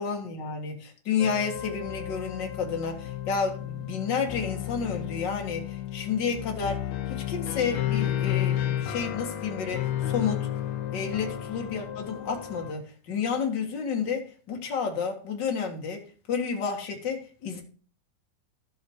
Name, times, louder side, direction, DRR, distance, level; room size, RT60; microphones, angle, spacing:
voice 1, 0.0-6.8 7.1-10.5 10.9-16.0 16.3-17.6, left 6 dB, 40° left, 1.6 m, -31 dB
sound 1, 1.2-12.7, left 12 dB, 90° left, 1.5 m, -32 dB
14.0 x 5.4 x 4.7 m
omnidirectional pair, 4.3 m